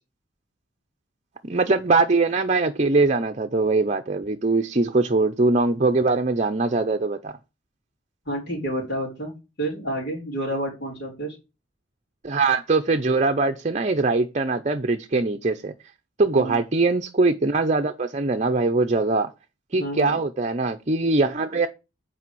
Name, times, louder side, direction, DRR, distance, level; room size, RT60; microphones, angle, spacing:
voice 1, 1.4-7.4 12.2-15.7 16.2-19.3 19.7-21.7, right 3 dB, 35° right, 0.7 m, -22 dB
voice 2, 8.3-9.3 9.6-11.4 16.3-16.6 19.8-20.2, right 1 dB, 55° left, 3.9 m, -29 dB
8.6 x 5.0 x 6.2 m
head